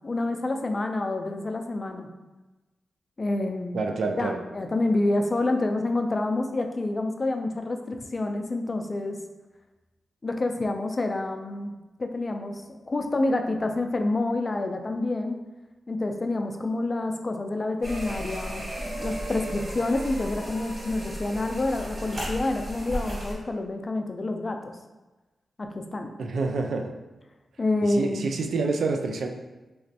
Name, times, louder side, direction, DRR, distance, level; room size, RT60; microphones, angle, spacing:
voice 1, 0.0-2.1 3.2-3.9 4.2-9.2 10.2-11.7 12.0-15.4 15.9-24.7 25.6-26.1 27.6-28.3, left 2 dB, 35° left, 5 dB, 0.4 m, -28 dB
voice 2, 3.7-4.4 26.2-27.0 27.8-29.3, right 3 dB, 75° right, 4 dB, 0.3 m, -28 dB
sound 1, 17.8-23.3, equal, 35° right, 1.4 m, -34 dB
3.1 x 3.0 x 2.8 m, 1.1 s
cardioid pair, 70°, 0 cm